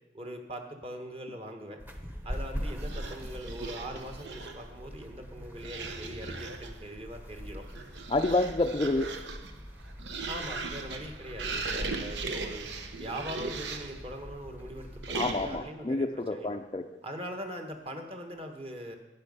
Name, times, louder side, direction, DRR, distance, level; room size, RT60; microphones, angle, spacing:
voice 1, 0.1-1.8 2.2-7.7 10.3-12.6 13.0-16.6 17.0-19.0, equal, 35° right, 4 dB, 1.3 m, -41 dB
sound 1, 1.8-15.6, equal, 10° right, 0.9 m, -42 dB
sound 2, 2.8-4.7 5.6-6.8 7.5-14.0 15.0-15.7, right 4 dB, 80° right, 1.0 m, -38 dB
voice 2, 8.1-9.1 15.1-16.9, left 2 dB, 25° left, 3 dB, 0.4 m, -28 dB
11.5 x 9.6 x 5.5 m, 1.0 s
head